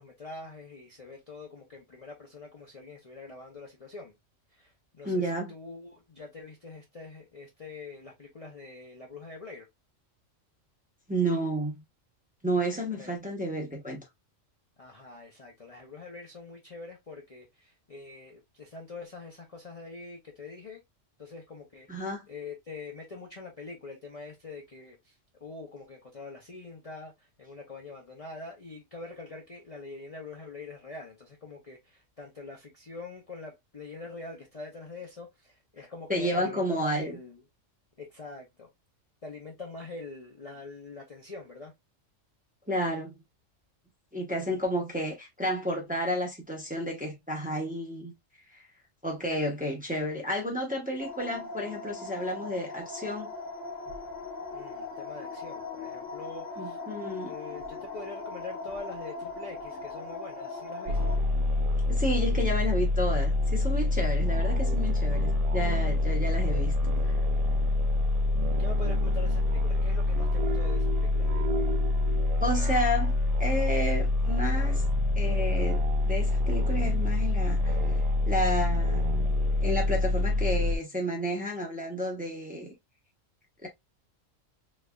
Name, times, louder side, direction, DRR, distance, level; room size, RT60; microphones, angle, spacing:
voice 1, 0.0-4.1 4.5-9.7 12.9-13.1 14.8-20.8 21.2-37.4 38.0-38.7 39.2-41.7 44.3-44.7 54.5-56.8 57.2-61.1 68.6-71.5, left 3 dB, 35° left, 0.7 m, -44 dB
voice 2, 5.0-5.5 11.1-11.8 12.4-14.0 21.9-22.2 36.1-37.1 42.7-43.1 44.1-48.1 48.5-48.6 49.0-53.3 56.6-57.3 61.9-67.2 72.4-74.8 75.1-77.7 78.3-79.2 79.6-82.7 83.6-83.7, equal, 10° right, 0.9 m, -31 dB
sound 1, 51.0-61.2, left 3 dB, 55° left, 1.5 m, -39 dB
sound 2, 60.9-80.8, left 2 dB, 80° right, 0.3 m, -26 dB
3.3 x 3.2 x 2.3 m
omnidirectional pair, 1.3 m